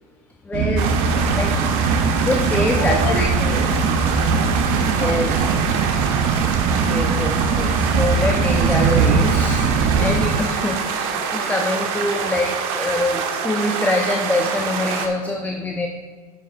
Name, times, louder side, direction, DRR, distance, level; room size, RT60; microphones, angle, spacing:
voice 1, 0.5-0.9 1.3-1.5 2.2-3.3 5.0-5.3 6.9-15.9, left 2 dB, 10° left, 3 dB, 0.7 m, -24 dB
sound 1, 0.5-10.4, right 5 dB, 40° right, 0.6 m, -20 dB
sound 2, 0.8-15.1, right 6 dB, 55° right, 1.1 m, -25 dB
voice 2, 2.8-5.8 9.8-10.2, left 3 dB, 75° left, 3 dB, 1.3 m, -32 dB
10.0 x 8.0 x 2.4 m, 1.5 s
hypercardioid pair, 90°, 20 cm